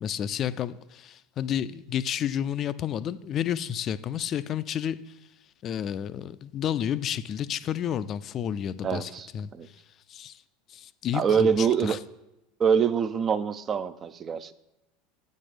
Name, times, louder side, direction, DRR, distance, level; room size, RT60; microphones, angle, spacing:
voice 1, 0.0-5.2 5.6-9.8 10.1-10.4 10.7-12.0, left 9 dB, 40° left, 14 dB, 0.3 m, -31 dB
voice 2, 8.8-9.7 11.1-12.0 12.6-14.5, right 7 dB, 35° right, 13 dB, 0.4 m, -25 dB
8.4 x 4.3 x 5.0 m, 0.92 s
hypercardioid pair, 80°, 0 cm